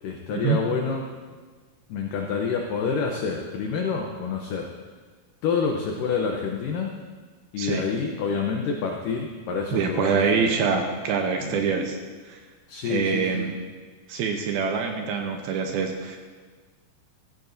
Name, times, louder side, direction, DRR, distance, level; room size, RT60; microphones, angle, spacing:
voice 1, 0.0-1.0 1.9-4.7 5.4-6.9 7.5-10.4 11.5-11.6 12.7-13.5, left 5 dB, 80° left, 1 dB, 1.9 m, -27 dB
voice 2, 9.7-12.0 12.3-12.4 12.8-13.5 14.1-16.2, right 6 dB, 80° right, 3 dB, 2.4 m, -25 dB
16.0 x 14.0 x 2.6 m, 1.5 s
omnidirectional pair, 4.9 m